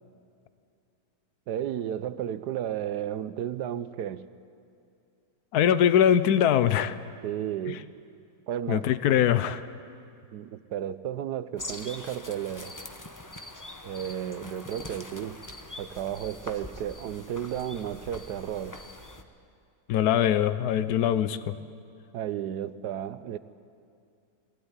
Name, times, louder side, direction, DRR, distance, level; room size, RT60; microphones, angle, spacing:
voice 1, 1.5-4.3 7.2-7.9 8.5-8.9 10.3-12.7 13.8-15.4 15.8-18.8 22.1-23.4, right 10 dB, 85° right, 14 dB, 1.3 m, -33 dB
voice 2, 5.5-7.0 8.7-9.6 19.9-21.5, left 9 dB, 75° left, 14 dB, 1.3 m, -22 dB
sound 1, 11.6-19.2, left 2 dB, 15° left, 0.8 m, -43 dB
21.5 x 16.0 x 9.8 m, 2.5 s
omnidirectional pair, 1.7 m